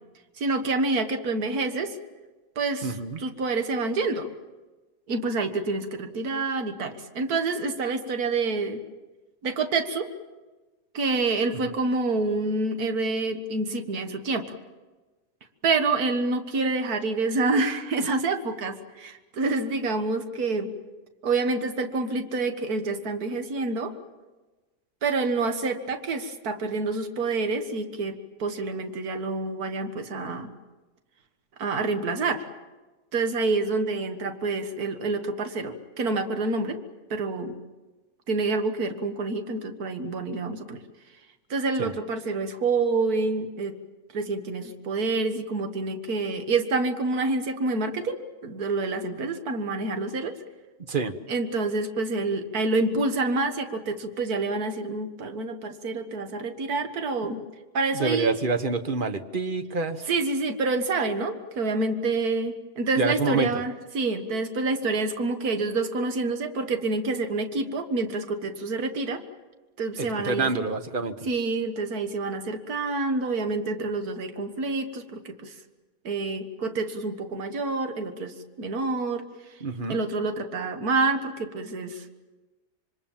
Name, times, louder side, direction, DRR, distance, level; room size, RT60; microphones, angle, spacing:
voice 1, 0.4-2.0 2.6-4.3 5.1-8.8 9.4-10.1 10.9-14.5 15.6-20.7 21.2-23.9 25.0-30.5 31.6-32.4 33.1-36.8 37.1-37.6 38.3-40.8 41.5-43.8 44.1-50.4 51.3-57.4 57.7-58.4 60.1-69.2 69.8-70.7 71.3-75.5 76.0-79.2 79.9-82.1, right 3 dB, 65° right, 7 dB, 2.0 m, -27 dB
voice 2, 2.8-3.2 11.6-11.7 41.8-41.9 50.9-51.1 57.2-57.4 57.9-60.1 63.0-63.5 70.0-71.1 79.6-80.0, right 4 dB, 35° right, 9 dB, 1.2 m, -27 dB
27.0 x 24.0 x 7.3 m, 1.2 s
omnidirectional pair, 1.8 m